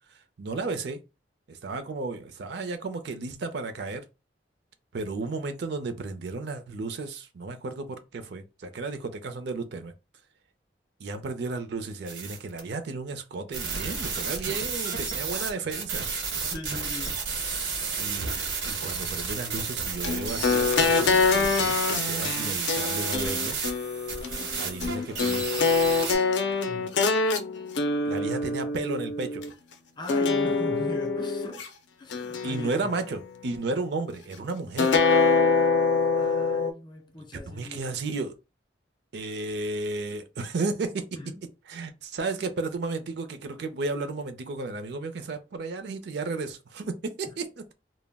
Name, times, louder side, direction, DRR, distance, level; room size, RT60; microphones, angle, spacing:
voice 1, 0.4-1.0 1.5-4.0 4.9-9.9 11.0-16.0 18.0-18.4 18.7-23.6 24.6-25.5 28.0-29.4 32.4-34.9 37.5-38.3 39.1-41.1 41.7-47.5, right 3 dB, 65° right, 0.4 m, -33 dB
sound 1, 12.1-12.6 13.5-26.2, right 5 dB, 85° right, 0.9 m, -31 dB
voice 2, 16.5-17.2 26.6-26.9 30.0-31.7 32.0-32.9 36.1-38.0 41.2-41.4 47.3-47.4, left 1 dB, 25° left, 0.5 m, -40 dB
sound 2, 20.0-29.5 30.1-31.7 32.1-33.2 34.8-36.7, left 4 dB, 80° left, 0.4 m, -25 dB
2.2 x 2.0 x 3.4 m
head